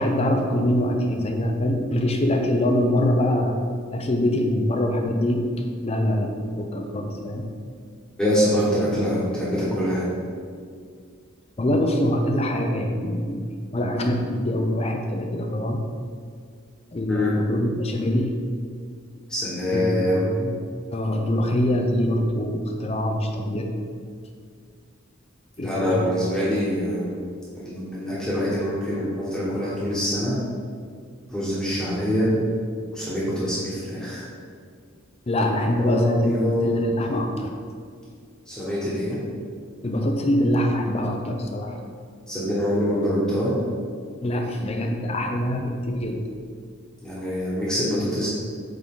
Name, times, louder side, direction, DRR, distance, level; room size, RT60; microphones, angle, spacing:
voice 1, 0.0-3.5 3.9-5.4 5.8-7.5 11.6-13.5 13.7-15.8 16.9-18.3 19.7-20.6 20.9-23.7 25.6-26.1 35.3-37.5 39.8-41.8 44.2-46.2, left 1 dB, 30° left, 3 dB, 0.5 m, -24 dB
voice 2, 8.2-10.1 17.1-17.3 19.3-20.3 25.6-27.1 27.6-30.3 31.3-32.3 32.9-34.3 35.5-36.9 38.5-39.2 42.3-43.5 47.0-48.3, equal, 5° left, -8 dB, 1.4 m, -25 dB
8.4 x 3.8 x 3.8 m, 2.1 s
head